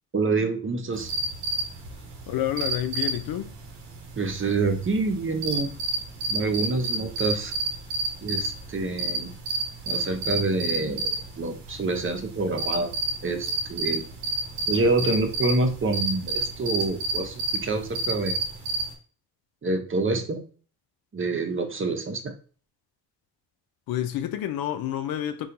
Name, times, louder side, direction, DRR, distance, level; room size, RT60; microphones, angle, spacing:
voice 1, 0.1-1.1 4.2-5.7 6.3-7.5 8.2-9.3 9.9-12.9 13.2-14.0 14.7-18.4 19.6-20.4 21.1-22.3, right 3 dB, 30° right, 0.8 m, -27 dB
sound 1, 0.9-18.9, right 2 dB, 85° right, 1.0 m, -31 dB
voice 2, 2.3-3.6 23.9-25.5, left 11 dB, 70° left, 0.5 m, -29 dB
4.3 x 2.3 x 3.8 m
supercardioid pair, 60°, 38 cm